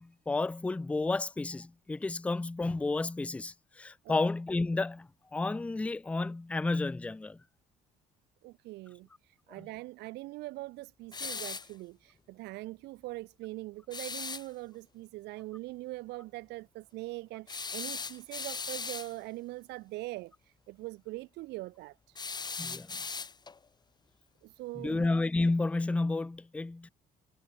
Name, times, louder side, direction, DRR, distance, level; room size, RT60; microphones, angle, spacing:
voice 1, 0.0-7.4 9.6-9.7 22.6-23.0 24.8-26.9, left 3 dB, 10° left, 0.3 m, -31 dB
voice 2, 8.4-22.2 24.4-25.1, right 20 dB, 90° right, 3.0 m, -42 dB
sound 1, 11.1-11.7 13.9-14.5 17.5-19.1 22.2-23.6, left 5 dB, 25° left, 1.6 m, -38 dB
cardioid pair, 110°, 17 cm